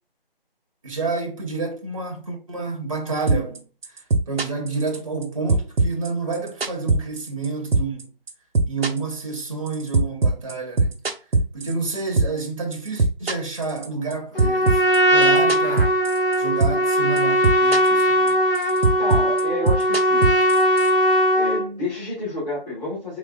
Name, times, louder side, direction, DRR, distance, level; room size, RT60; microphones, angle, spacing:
voice 1, 0.8-3.6 4.3-8.1 8.7-11.0 11.5-14.8 15.1-15.9 16.4-18.4, right 4 dB, 35° right, 0.6 m, -29 dB
sound 1, 3.3-3.6 3.8-5.2 5.5-7.5 7.7-8.0 8.3-12.5 12.7-14.1 14.4-16.3 16.6-16.9 17.2-18.0 18.3-20.9, right 3 dB, 80° right, 0.7 m, -20 dB
Trumpet, 14.4-21.7, equal, 65° left, 1.4 m, -19 dB
voice 2, 19.0-20.3 21.3-23.2, left 1 dB, 40° left, 1.7 m, -30 dB
3.7 x 3.1 x 2.3 m
figure-of-eight pair, 160°, 30 cm